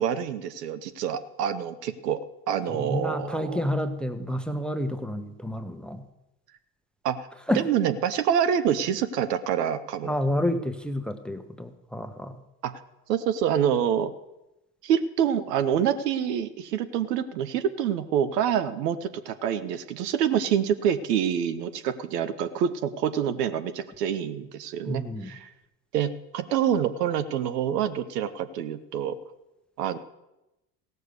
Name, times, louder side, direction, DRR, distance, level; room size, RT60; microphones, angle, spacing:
voice 1, 0.0-2.2 2.5-3.6 7.0-7.2 7.5-10.1 12.6-12.7 13.1-14.1 14.8-25.5 25.9-29.2 29.8-30.0, right 9 dB, 70° right, 11 dB, 1.0 m, -26 dB
voice 2, 2.7-6.0 7.5-7.6 10.0-12.4 24.9-25.3, left 1 dB, ahead, 9 dB, 0.9 m, -29 dB
16.0 x 6.6 x 6.6 m, 0.95 s
hypercardioid pair, 75°, 49 cm